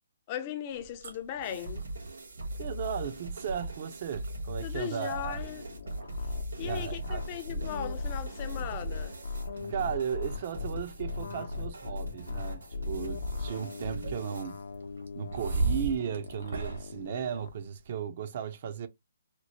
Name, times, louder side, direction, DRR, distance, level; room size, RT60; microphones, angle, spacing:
voice 1, 0.3-1.9 4.6-5.6 6.6-9.2, left 10 dB, 30° left, 0.5 m, -38 dB
sound 1, 0.7-17.9, right 3 dB, 70° right, 1.3 m, -41 dB
sound 2, 1.4-14.4, right 1 dB, 90° right, 2.2 m, -40 dB
voice 2, 2.6-5.4 6.6-7.2 9.7-14.6 15.1-18.9, right 8 dB, 45° right, 0.5 m, -35 dB
sound 3, 5.1-17.5, left 4 dB, 75° left, 0.6 m, -39 dB
4.2 x 2.1 x 2.9 m
hypercardioid pair, 160°, 0 cm